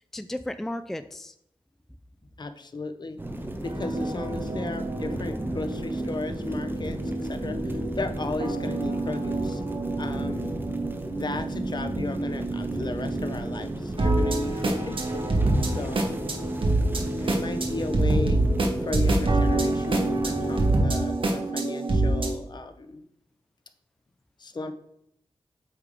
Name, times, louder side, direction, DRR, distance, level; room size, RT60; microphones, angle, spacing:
voice 1, 0.1-1.3 10.3-10.5 15.6-16.1 17.3-17.6, left 1 dB, 5° left, 10 dB, 0.3 m, -36 dB
voice 2, 2.4-3.2 3.6-9.6 10.0-10.6 11.2-15.2 15.6-16.1 17.2-18.4 18.8-23.0 24.4-24.7, left 3 dB, 50° left, 9 dB, 0.7 m, -35 dB
sound 1, 3.2-20.8, right 1 dB, 20° right, 0.9 m, -35 dB
sound 2, 3.7-22.3, right 2 dB, 65° right, 1.2 m, -27 dB
8.3 x 3.6 x 4.9 m, 0.73 s
wide cardioid pair, 75°, 10 cm